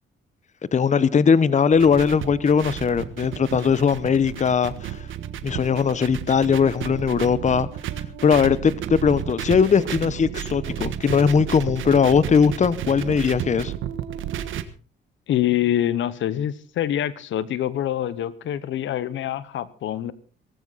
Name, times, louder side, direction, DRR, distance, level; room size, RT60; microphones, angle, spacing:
voice 1, 0.7-5.0 5.4-7.7 8.2-13.7, left 6 dB, 35° left, 1.0 m, -19 dB
sound 1, 1.7-14.6, right 10 dB, 80° right, 1.5 m, -32 dB
voice 2, 15.3-20.1, left 11 dB, 75° left, 1.0 m, -25 dB
18.5 x 15.0 x 4.1 m
cardioid pair, 90°, 20 cm